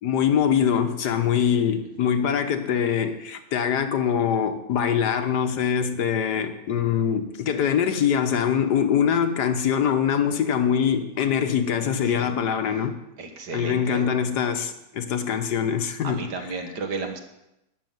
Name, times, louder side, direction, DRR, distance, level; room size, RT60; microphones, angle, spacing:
voice 1, 0.0-13.0 13.5-16.3, left 8 dB, 85° left, 8 dB, 1.6 m, -23 dB
voice 2, 13.2-14.0 16.0-17.2, right 3 dB, 80° right, 5 dB, 2.1 m, -33 dB
12.5 x 6.4 x 9.3 m, 0.89 s
omnidirectional pair, 1.8 m